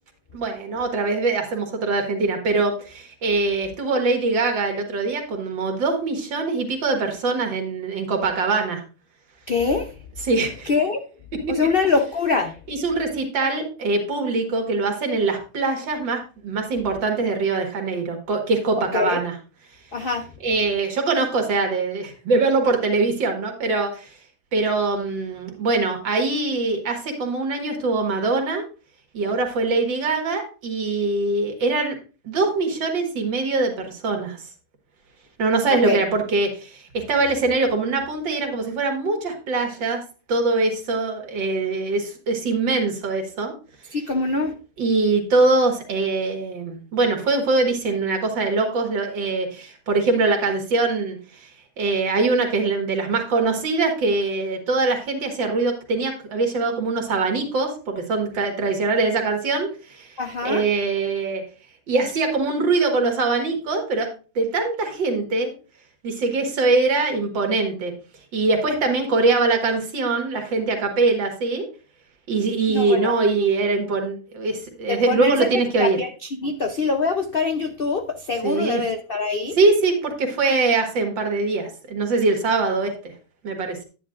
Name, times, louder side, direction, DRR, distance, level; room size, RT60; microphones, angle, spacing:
voice 1, 0.3-8.8 10.2-10.7 11.3-11.6 12.7-19.3 20.4-24.1 24.5-28.6 29.1-32.0 32.2-34.4 35.4-40.0 40.3-43.5 44.8-51.5 51.8-61.4 61.9-64.1 64.4-65.5 66.0-67.9 68.3-71.7 72.3-76.0 78.4-78.8 79.6-82.9 83.4-83.8, right 3 dB, 85° right, 2.4 m, -23 dB
voice 2, 9.5-9.9 10.6-11.0 11.5-12.5 18.9-19.2 19.9-20.3 35.8-36.0 43.9-44.6 60.2-60.6 72.7-73.2 74.9-75.5 75.8-79.6, left 4 dB, 65° left, 0.5 m, -24 dB
10.0 x 9.4 x 2.5 m
omnidirectional pair, 2.0 m